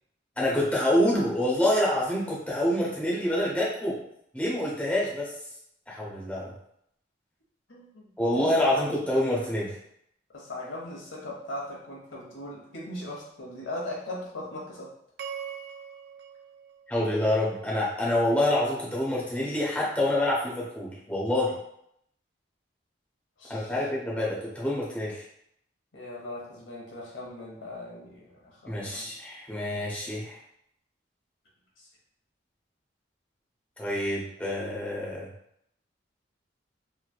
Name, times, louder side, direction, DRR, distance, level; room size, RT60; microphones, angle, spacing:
voice 1, 0.4-4.0 4.3-5.3 5.9-6.5 8.2-9.7 16.9-21.5 23.5-25.2 28.6-30.4 33.8-35.3, left 1 dB, 5° left, -5 dB, 0.6 m, -27 dB
voice 2, 7.7-8.7 10.3-14.9 23.4-23.8 24.2-24.3 25.9-29.1 31.8-31.9, left 1 dB, 80° left, -3 dB, 0.9 m, -39 dB
sound 1, 15.2-17.6, right 7 dB, 60° right, 0.3 m, -42 dB
3.0 x 2.7 x 2.2 m, 0.73 s
head